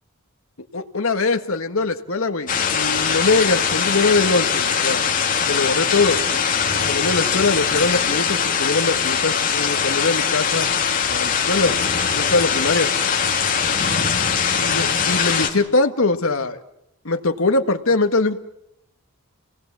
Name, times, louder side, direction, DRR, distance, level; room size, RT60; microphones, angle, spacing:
voice 1, 0.7-5.0 5.4-6.2 6.7-10.7 11.1-11.7 12.1-12.9 14.6-16.6 17.0-18.4, left 3 dB, 65° left, 7 dB, 1.7 m, -22 dB
sound 1, 2.5-15.5, left 7 dB, 40° left, 3.0 m, -21 dB
29.5 x 19.0 x 7.5 m, 0.83 s
head